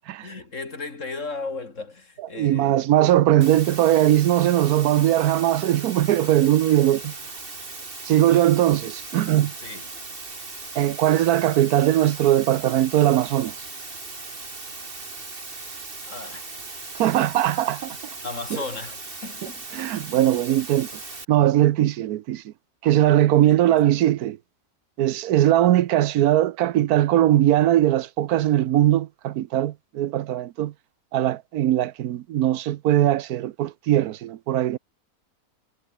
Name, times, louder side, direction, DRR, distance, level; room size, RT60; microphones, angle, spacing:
voice 1, 0.2-2.8 9.6-9.9 16.1-16.5 18.2-19.6 23.4-23.8, left 3 dB, 55° left, 3.6 m, -35 dB
voice 2, 2.4-7.1 8.0-9.5 10.7-13.5 17.0-18.0 18.5-18.6 19.7-20.9 21.3-22.5 22.8-24.4 25.0-30.7 31.1-34.8, right 13 dB, 80° right, 1.2 m, -20 dB
sound 1, 3.4-21.3, right 3 dB, 35° right, 2.7 m, -38 dB
omnidirectional pair, 1.6 m